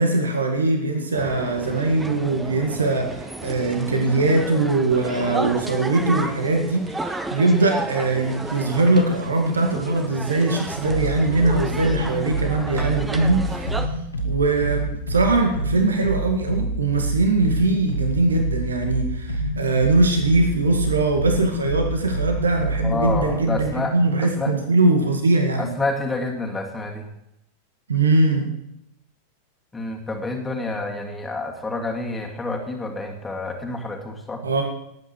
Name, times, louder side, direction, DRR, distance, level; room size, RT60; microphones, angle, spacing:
voice 1, 0.0-13.7 14.2-25.8 27.9-28.5 34.4-34.6, right 2 dB, 70° right, 4 dB, 2.0 m, -21 dB
sound 1, 1.1-13.9, right 2 dB, 10° right, 1.1 m, -33 dB
sound 2, 10.7-23.6, right 1 dB, 80° left, 2.0 m, -27 dB
voice 2, 22.8-24.5 25.6-27.1 29.7-34.4, left 2 dB, 10° left, 1 dB, 2.3 m, -28 dB
18.5 x 9.2 x 4.7 m, 0.82 s
figure-of-eight pair, 90°, 0 cm